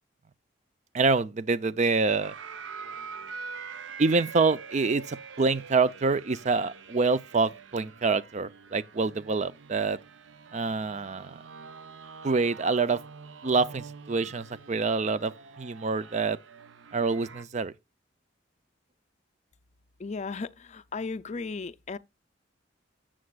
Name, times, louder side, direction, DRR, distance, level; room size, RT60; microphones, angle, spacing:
voice 1, 0.9-2.3 4.0-10.0 10.5-11.4 12.2-13.0 13.4-16.4 16.9-17.7, right 4 dB, 40° right, 0.5 m, -26 dB
sound 1, 2.2-17.4, right 5 dB, 80° right, 0.6 m, -45 dB
voice 2, 20.0-22.0, left 4 dB, 35° left, 0.5 m, -35 dB
13.0 x 7.5 x 2.3 m
head